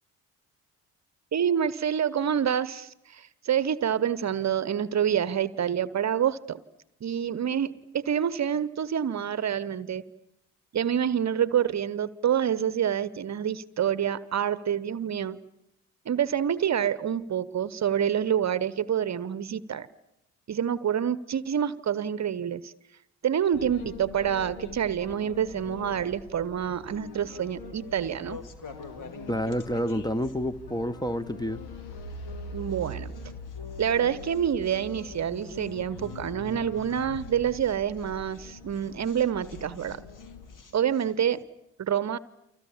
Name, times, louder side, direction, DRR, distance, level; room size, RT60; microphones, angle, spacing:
voice 1, 1.3-6.6 7.0-10.0 10.7-15.4 16.1-19.9 20.5-22.7 23.2-28.4 32.5-33.1 33.8-40.0 40.7-41.4 41.8-42.2, right 9 dB, 40° right, 1.0 m, -27 dB
sound 1, 23.5-40.6, left 2 dB, 65° left, 2.6 m, -43 dB
sound 2, 26.8-41.4, left 4 dB, 45° left, 2.6 m, -52 dB
voice 2, 29.3-31.6, equal, 10° left, 1.1 m, -29 dB
30.0 x 25.0 x 7.3 m
figure-of-eight pair, 45°, 42 cm